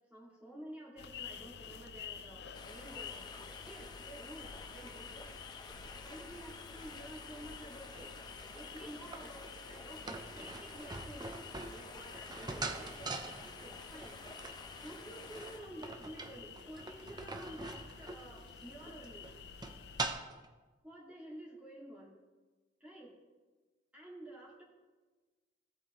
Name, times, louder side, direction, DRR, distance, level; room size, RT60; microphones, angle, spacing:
voice 1, 0.1-3.2 3.6-5.3 6.0-11.4 11.7-14.3 14.8-19.3 20.8-22.2 22.8-23.1 23.9-24.6, right 1 dB, 10° right, -6 dB, 2.3 m, -51 dB
sound 1, 1.0-20.1, left 6 dB, 65° left, 0.5 m, -51 dB
sound 2, 2.5-15.6, left 3 dB, 25° left, 0.8 m, -51 dB
sound 3, 7.6-20.5, right 3 dB, 25° right, 0.7 m, -44 dB
17.5 x 8.3 x 3.1 m, 1.3 s
head